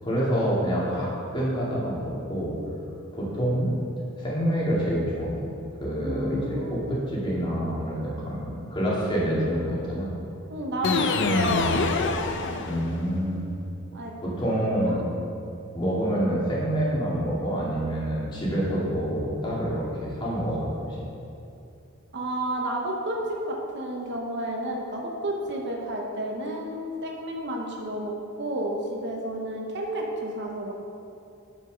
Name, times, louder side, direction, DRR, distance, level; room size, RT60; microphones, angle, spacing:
voice 1, 0.0-2.6 3.1-3.7 4.2-5.4 5.8-10.1 12.7-13.4 14.2-15.0 15.7-21.0, equal, 25° left, -7 dB, 2.1 m, -27 dB
voice 2, 0.5-0.9 6.0-7.0 10.5-11.8 13.9-14.1 14.9-15.0 22.1-28.1 28.4-30.7, right 1 dB, 60° right, 0 dB, 1.0 m, -31 dB
sound 1, 10.8-13.2, left 3 dB, 60° left, 0.6 m, -25 dB
7.7 x 6.2 x 5.1 m, 2.6 s
head